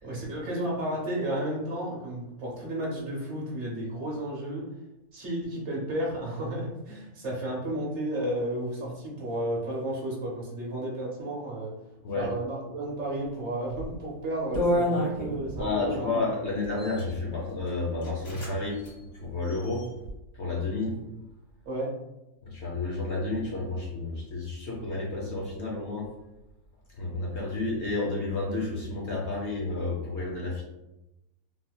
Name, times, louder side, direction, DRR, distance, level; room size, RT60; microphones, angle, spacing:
voice 1, 0.0-4.7 5.1-11.8 12.1-16.1 21.7-21.9, right 1 dB, 55° right, -3 dB, 1.0 m, -32 dB
sound 1, 13.7-14.0 14.5-15.7 16.6-17.1 17.7-17.8 18.0-18.5 18.8-18.9 19.4-20.1, equal, 80° left, 1.7 m, -29 dB
voice 2, 15.6-18.8 19.1-19.9 20.3-20.9 22.4-26.1 26.9-30.6, left 3 dB, 55° left, -3 dB, 0.9 m, -31 dB
3.5 x 2.8 x 2.2 m, 0.93 s
omnidirectional pair, 1.5 m